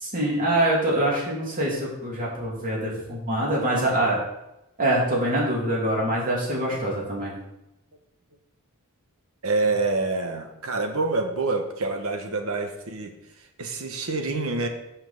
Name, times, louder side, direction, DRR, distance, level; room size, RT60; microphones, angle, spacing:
voice 1, 0.0-4.2 4.8-7.3, right 1 dB, 40° right, -4 dB, 2.8 m, -24 dB
voice 2, 6.7-7.1 9.4-13.2 13.6-14.7, right 3 dB, 70° right, 5 dB, 1.2 m, -27 dB
5.8 x 5.7 x 6.9 m, 0.87 s
head